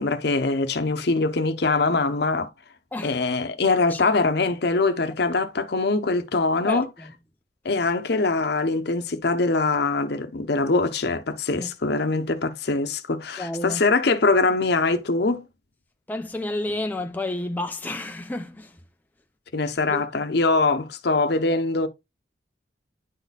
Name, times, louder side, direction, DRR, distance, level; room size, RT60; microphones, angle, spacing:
voice 1, 0.0-2.5 3.0-6.9 7.6-15.5 19.5-21.9, left 3 dB, 60° left, 0.8 m, -23 dB
voice 2, 3.7-4.0 6.6-7.1 11.5-11.7 13.4-13.8 16.1-18.8 19.9-20.0, left 1 dB, 10° left, 0.4 m, -31 dB
10.0 x 4.1 x 2.3 m
head